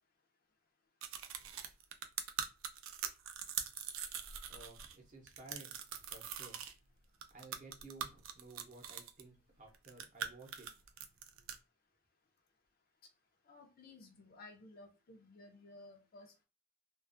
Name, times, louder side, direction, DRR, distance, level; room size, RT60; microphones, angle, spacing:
sound 1, 1.0-5.0 5.3-6.7 7.2-9.2 9.7-11.6, right 8 dB, 85° right, 0.4 m, -42 dB
voice 1, 4.5-5.8 6.1-6.6 7.3-10.7, right 2 dB, 40° right, 1 dB, 0.7 m, -55 dB
voice 2, 13.5-16.4, left 2 dB, 50° left, 3 dB, 0.5 m, -56 dB
2.4 x 2.3 x 2.5 m, 0.30 s
head